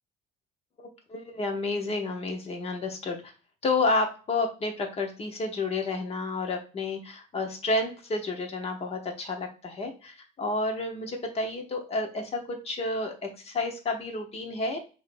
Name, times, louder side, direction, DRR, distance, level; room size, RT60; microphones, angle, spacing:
voice 1, 0.8-3.3 3.6-14.8, left 2 dB, 30° left, 4 dB, 0.9 m, -30 dB
6.3 x 2.7 x 2.5 m, 0.36 s
cardioid pair, 155°, 21 cm